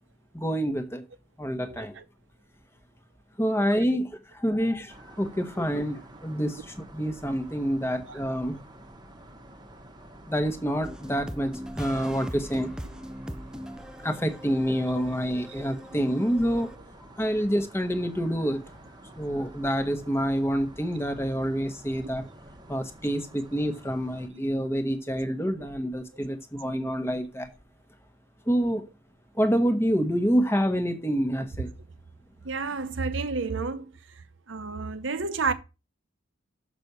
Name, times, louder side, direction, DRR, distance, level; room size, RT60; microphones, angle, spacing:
voice 1, 0.3-1.0 1.4-1.9 3.4-8.6 10.3-12.8 14.0-16.7 17.2-18.6 19.2-22.3 22.7-27.5 28.5-28.8 29.3-31.7, equal, 10° left, 1.1 m, -27 dB
voice 2, 1.6-2.0 8.1-8.2 32.4-33.9 34.5-35.5, right 4 dB, 65° right, 0.9 m, -30 dB
sound 1, 4.9-24.3, right 1 dB, 20° right, 1.0 m, -49 dB
sound 2, 10.8-16.8, equal, 5° right, 0.4 m, -40 dB
6.1 x 5.9 x 6.8 m
head